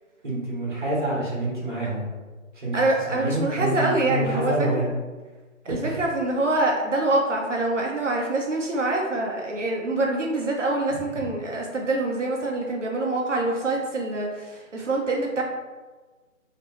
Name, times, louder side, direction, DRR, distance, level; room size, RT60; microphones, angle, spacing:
voice 1, 0.2-2.1 2.6-2.7 3.1-4.9 5.8-5.9, right 1 dB, 35° right, -5 dB, 1.1 m, -27 dB
voice 2, 2.7-4.9 5.6-15.4, right 2 dB, 60° right, 0 dB, 0.6 m, -25 dB
3.1 x 2.9 x 3.0 m, 1.3 s
hypercardioid pair, 175°, 41 cm